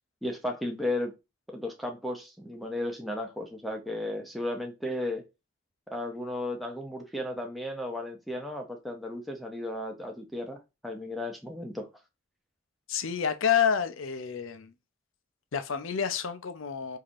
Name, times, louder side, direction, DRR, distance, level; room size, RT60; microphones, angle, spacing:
voice 1, 0.2-1.1 1.5-5.2 5.9-11.9, left 1 dB, ahead, 0.6 m, -34 dB
voice 2, 12.9-14.7 15.5-17.0, left 7 dB, 80° left, 0.6 m, -28 dB
4.8 x 2.8 x 2.5 m
head